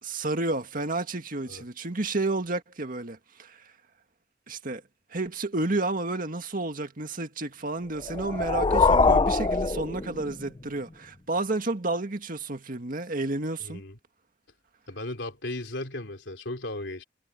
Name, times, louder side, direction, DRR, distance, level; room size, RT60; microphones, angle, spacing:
voice 1, 0.0-3.6 4.5-4.8 5.1-13.8, right 2 dB, 50° right, 1.9 m, -31 dB
sound 1, 8.0-10.6, left 4 dB, 30° left, 0.7 m, -23 dB
voice 2, 13.6-14.0 14.9-17.0, left 2 dB, 80° left, 3.3 m, -36 dB
head